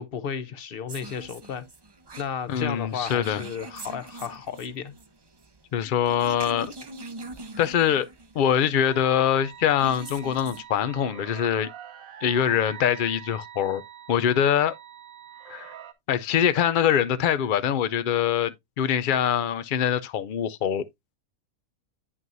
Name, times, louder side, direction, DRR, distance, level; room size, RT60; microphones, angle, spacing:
voice 1, 0.0-1.6 2.2-4.9, left 7 dB, 50° left, 0.8 m, -33 dB
sound 1, 0.9-10.6, right 3 dB, 30° right, 0.4 m, -43 dB
voice 2, 2.5-3.4 5.7-6.7 7.6-8.1 8.3-11.7 12.2-13.8 14.1-14.7 15.5-15.7 16.1-20.8, left 9 dB, 75° left, 0.4 m, -23 dB
sound 2, 8.9-15.9, right 10 dB, 70° right, 1.2 m, -44 dB
9.1 x 6.1 x 2.5 m
omnidirectional pair, 1.5 m